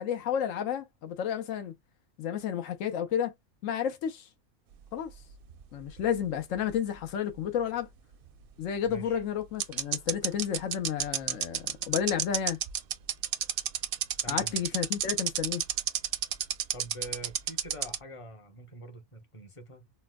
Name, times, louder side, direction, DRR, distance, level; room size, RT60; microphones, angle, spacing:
voice 1, 0.0-1.7 2.2-3.3 3.6-4.3 4.9-5.1 5.7-7.9 8.6-12.6 14.3-15.6, left 9 dB, 85° left, 1.1 m, -31 dB
sound 1, 5.1-6.7 6.9-7.0 8.8-8.9 9.6-18.0, right 10 dB, 60° right, 0.6 m, -30 dB
voice 2, 8.8-9.2 14.2-14.8 16.7-19.9, right 1 dB, 30° left, 0.9 m, -45 dB
4.3 x 2.1 x 2.3 m
omnidirectional pair, 1.3 m